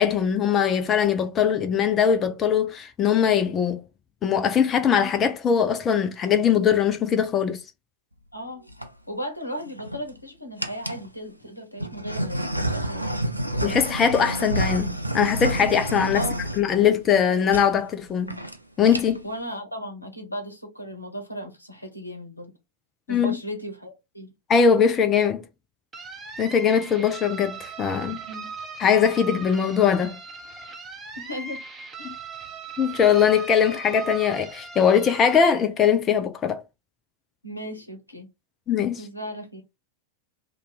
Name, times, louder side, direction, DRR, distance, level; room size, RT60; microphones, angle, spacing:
voice 1, 0.0-3.8 4.2-7.6 13.6-16.2 16.6-18.4 18.8-19.2 23.1-23.4 24.5-25.4 26.4-28.2 28.8-30.2 32.0-32.1 32.8-36.6 38.7-39.0, left 7 dB, 25° left, 0.4 m, -21 dB
voice 2, 8.3-8.7 9.1-13.4 16.1-16.4 19.2-22.5 23.1-24.3 28.3-28.5 31.2-31.6 32.0-32.1 37.4-38.3 39.0-39.6, equal, 85° left, 0.8 m, -36 dB
sound 1, 8.5-8.9 9.6-10.1 10.6-11.1 11.8-17.2 17.5-17.7 18.0-18.1 18.3-18.6 18.8-19.3, right 1 dB, 90° right, 0.4 m, -29 dB
sound 2, 25.9-35.5, right 4 dB, 20° right, 0.7 m, -39 dB
2.7 x 2.3 x 4.0 m
figure-of-eight pair, 90°, 0 cm